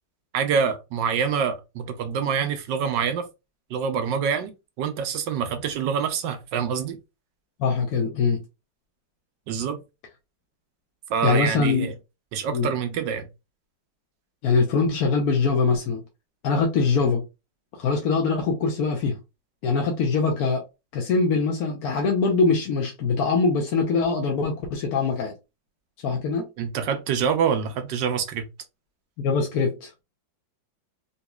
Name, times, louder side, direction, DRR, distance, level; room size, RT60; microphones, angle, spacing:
voice 1, 0.3-3.3 3.7-4.5 4.8-7.0 9.5-9.8 11.1-11.9 12.3-13.3 26.6-28.5, right 7 dB, 75° right, 1.3 m, -26 dB
voice 2, 7.6-8.4 11.2-11.9 12.5-12.7 14.4-16.0 16.4-17.2 17.8-19.2 19.6-20.6 20.9-25.3 26.0-26.5 29.2-29.9, left 4 dB, 65° left, 1.1 m, -23 dB
4.0 x 2.8 x 2.2 m
omnidirectional pair, 2.0 m